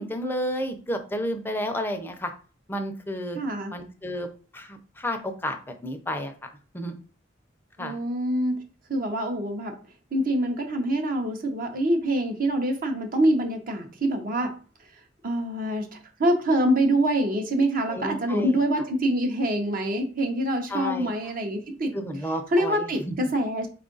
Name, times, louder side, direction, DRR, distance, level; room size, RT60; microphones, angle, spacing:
voice 1, 0.0-2.3 2.7-3.4 3.7-4.3 4.5-6.5 6.7-7.0 7.8-8.0 17.9-18.6 20.7-21.1 21.9-23.1, equal, 10° left, 6 dB, 0.5 m, -31 dB
voice 2, 3.3-3.7 7.8-8.5 8.9-9.7 10.1-14.5 15.2-21.9 22.5-23.7, right 1 dB, 50° right, 4 dB, 0.7 m, -25 dB
4.4 x 2.4 x 3.8 m, 0.37 s
head